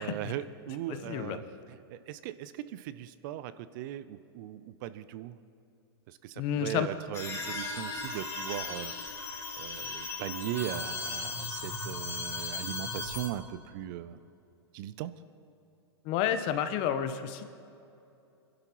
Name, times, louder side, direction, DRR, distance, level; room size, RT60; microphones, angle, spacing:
voice 1, 0.0-5.4 6.1-8.9 9.6-14.2 14.7-15.1, right 12 dB, 50° right, 14 dB, 0.5 m, -39 dB
voice 2, 0.9-1.4 6.4-6.9 16.0-17.4, left 9 dB, 40° left, 10 dB, 0.9 m, -30 dB
sound 1, 7.1-13.3, left 3 dB, 20° left, 2.5 m, -37 dB
24.0 x 11.5 x 3.0 m, 2.7 s
hypercardioid pair, 120°, 14 cm